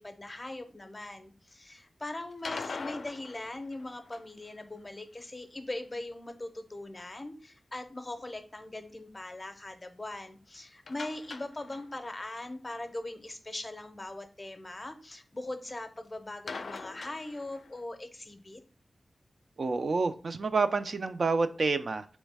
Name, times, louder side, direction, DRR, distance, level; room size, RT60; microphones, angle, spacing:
voice 1, 0.0-18.6, left 2 dB, 25° left, 8 dB, 0.6 m, -41 dB
sound 1, 2.3-4.5 10.9-12.1 12.4-12.5 12.9-13.0 16.5-17.8, left 4 dB, 75° left, 0.4 m, -42 dB
voice 2, 19.6-22.1, right 4 dB, 60° right, 9 dB, 0.3 m, -28 dB
4.0 x 3.1 x 3.3 m, 0.37 s
wide cardioid pair, 95°, 0 cm